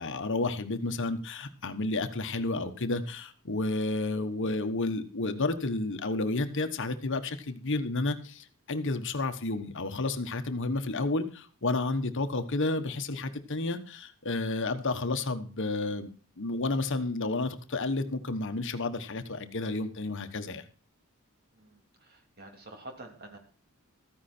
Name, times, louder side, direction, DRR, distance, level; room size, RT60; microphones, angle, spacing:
voice 1, 0.0-16.1 16.4-20.6, left 2 dB, 60° left, 8 dB, 1.2 m, -31 dB
voice 2, 21.6-23.4, right 2 dB, 45° right, 3 dB, 3.2 m, -48 dB
14.0 x 10.5 x 4.4 m, 0.38 s
head